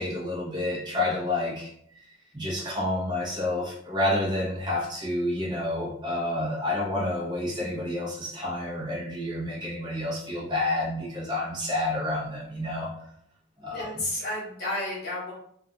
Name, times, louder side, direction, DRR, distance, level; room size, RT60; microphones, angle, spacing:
voice 1, 0.0-1.7 2.3-12.9 13.6-14.0, left 1 dB, 20° right, -6 dB, 0.7 m, -29 dB
voice 2, 13.6-15.3, left 1 dB, 55° left, -5 dB, 1.1 m, -32 dB
2.3 x 2.3 x 2.6 m, 0.69 s
head